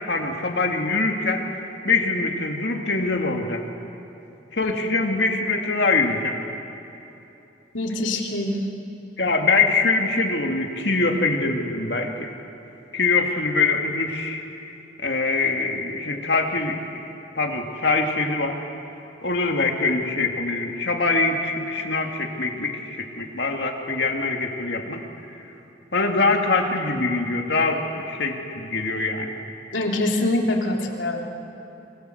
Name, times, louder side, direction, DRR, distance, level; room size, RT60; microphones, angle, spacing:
voice 1, 0.1-3.6 4.5-6.4 9.2-12.3 12.9-14.4 15.0-17.1 17.3-18.6 19.2-25.0 25.3-25.4 25.9-29.3, left 3 dB, 65° left, 3 dB, 2.5 m, -23 dB
voice 2, 7.7-8.6 29.7-31.6, left 1 dB, 90° left, 1 dB, 3.4 m, -25 dB
28.5 x 24.5 x 8.0 m, 3.0 s
head